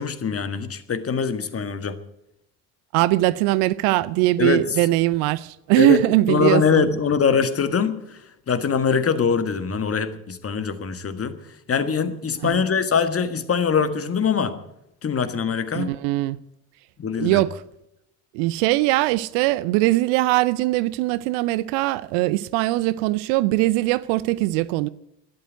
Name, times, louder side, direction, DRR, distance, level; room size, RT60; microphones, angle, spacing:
voice 1, 0.0-2.0 4.4-4.6 5.8-6.0 6.3-8.0 8.5-11.4 11.7-14.6 15.0-16.0 17.0-17.4, left 6 dB, 30° left, 1.7 m, -23 dB
voice 2, 2.9-6.9 12.4-12.6 15.7-16.4 17.1-17.6 18.3-24.9, right 18 dB, 55° right, 0.7 m, -21 dB
12.5 x 11.0 x 9.3 m
figure-of-eight pair, 60°, 48 cm